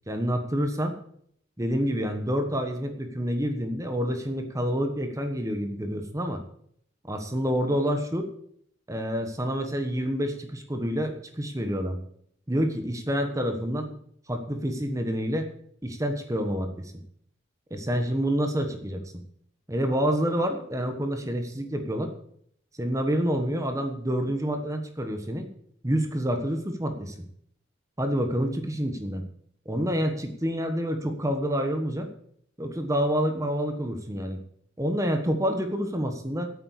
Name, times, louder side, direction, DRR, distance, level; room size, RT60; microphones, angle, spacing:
voice 1, 0.1-1.0 1.6-6.4 7.0-8.3 8.9-12.0 12.5-13.9 14.3-15.5 15.8-16.9 17.7-19.0 19.7-22.1 22.8-25.5 25.8-27.1 28.0-29.2 29.6-32.1 32.6-34.4 34.8-36.5, equal, 15° right, 6 dB, 1.3 m, -28 dB
8.8 x 8.5 x 8.0 m, 0.67 s
head